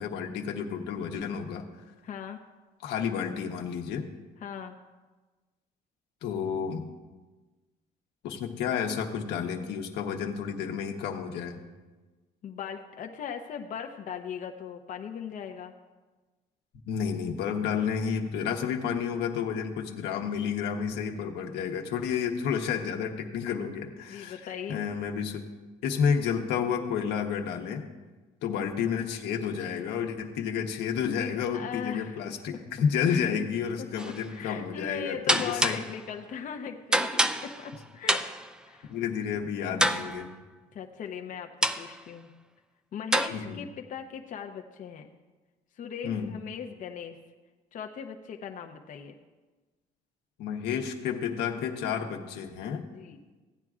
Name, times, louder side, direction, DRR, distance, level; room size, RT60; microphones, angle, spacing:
voice 1, 0.0-1.6 2.8-4.1 6.2-6.9 8.2-11.6 16.9-24.4 24.7-25.5 25.8-27.8 28.4-35.8 38.9-40.3 43.3-43.6 46.0-46.3 50.4-52.9, left 7 dB, 85° left, 3 dB, 1.0 m, -30 dB
voice 2, 2.0-2.4 4.4-4.8 12.4-15.7 24.1-24.8 29.6-29.8 31.5-32.6 33.1-33.3 33.8-38.2 38.7-38.9 40.7-42.3 42.9-45.1 45.7-47.2 47.7-49.2 52.8-53.2, left 7 dB, 50° left, 4 dB, 0.7 m, -39 dB
sound 1, 34.0-34.2 35.3-36.0 36.9-37.7 38.1-38.5 39.8-40.3 41.6-42.0 43.1-43.3, right 1 dB, 5° right, 0.4 m, -27 dB
16.0 x 9.0 x 2.4 m, 1.3 s
cardioid pair, 110°, 17 cm